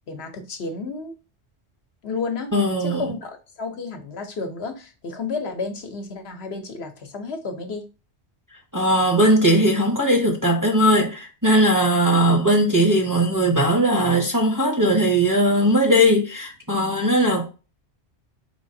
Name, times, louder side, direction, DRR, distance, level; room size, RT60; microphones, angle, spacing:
voice 1, 0.1-1.1 2.0-2.5 2.8-7.8, left 4 dB, 65° left, 1.0 m, -31 dB
voice 2, 2.5-3.1 8.7-17.5, equal, 20° right, 0.8 m, -19 dB
4.8 x 3.4 x 2.6 m
omnidirectional pair, 1.2 m